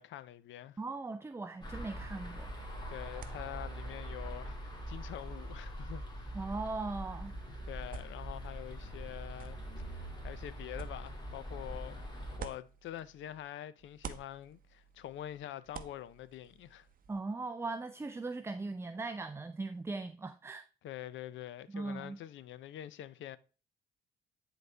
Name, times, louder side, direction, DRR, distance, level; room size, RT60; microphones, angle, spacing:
voice 1, 0.0-0.8 2.9-6.4 7.7-9.6 10.0-16.9 20.8-23.4, left 12 dB, 75° left, 0.5 m, -45 dB
voice 2, 0.8-2.5 6.3-7.4 17.1-20.7 21.7-22.2, right 3 dB, 15° right, 0.4 m, -39 dB
sound 1, 1.6-12.4, equal, 20° left, 2.3 m, -43 dB
sound 2, 2.3-13.5 13.8-17.2, right 6 dB, 45° right, 0.7 m, -53 dB
9.3 x 4.0 x 3.3 m
cardioid pair, 90°, 20 cm